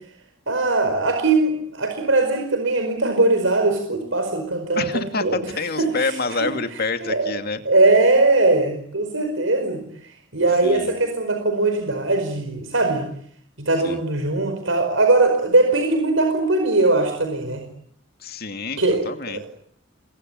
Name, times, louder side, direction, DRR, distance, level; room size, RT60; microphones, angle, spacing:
voice 1, 0.5-6.5 7.0-7.3 7.6-9.8 10.3-13.1 13.6-17.6 18.8-19.5, right 2 dB, 75° right, 6 dB, 5.0 m, -20 dB
voice 2, 4.8-7.6 10.6-10.9 13.8-14.0 18.2-19.4, left 3 dB, 50° left, 8 dB, 2.5 m, -27 dB
28.5 x 22.5 x 9.4 m, 0.66 s
head